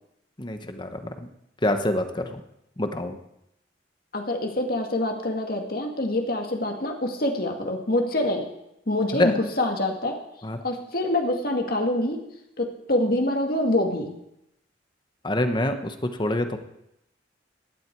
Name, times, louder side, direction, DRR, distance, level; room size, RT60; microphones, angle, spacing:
voice 1, 0.4-1.0 1.6-2.4 2.8-3.2 9.1-9.3 10.4-10.6 15.2-16.6, left 1 dB, 25° left, 7 dB, 1.1 m, -25 dB
voice 2, 4.1-8.5 8.9-10.2 10.6-12.2 12.6-14.2, left 1 dB, 55° left, 3 dB, 2.0 m, -25 dB
16.5 x 11.5 x 4.7 m, 0.81 s
head